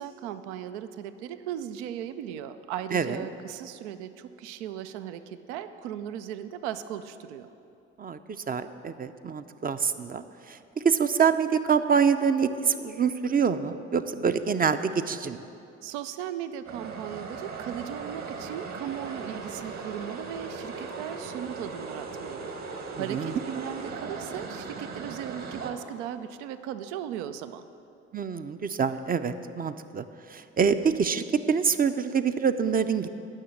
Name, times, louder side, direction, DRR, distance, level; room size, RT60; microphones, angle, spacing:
voice 1, 0.0-7.5 15.8-22.5 23.0-27.7, right 10 dB, 75° right, 11 dB, 0.6 m, -37 dB
voice 2, 2.9-3.2 8.0-15.5 23.0-23.3 28.1-30.0 30.3-33.1, right 6 dB, 25° right, 10 dB, 0.5 m, -26 dB
sound 1, 16.7-25.7, right 4 dB, 50° right, 1.4 m, -38 dB
10.0 x 6.3 x 7.5 m, 2.7 s
hypercardioid pair, 50°, 35 cm